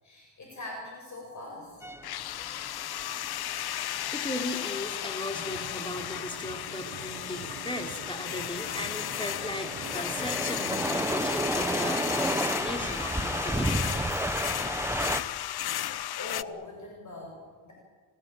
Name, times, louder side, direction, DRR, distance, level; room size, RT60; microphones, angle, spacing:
voice 1, 0.0-1.8 16.1-17.7, left 2 dB, 45° left, -1 dB, 7.2 m, -42 dB
sound 1, 1.8-15.2, right 1 dB, 5° right, 1.2 m, -32 dB
sound 2, 2.0-16.4, left 12 dB, 65° left, 0.7 m, -34 dB
voice 2, 4.1-13.9, left 1 dB, 10° left, 5 dB, 3.3 m, -37 dB
sound 3, 5.3-11.2, right 11 dB, 90° right, 1.2 m, -47 dB
29.0 x 18.0 x 9.0 m, 1.5 s
cardioid pair, 105°, 41 cm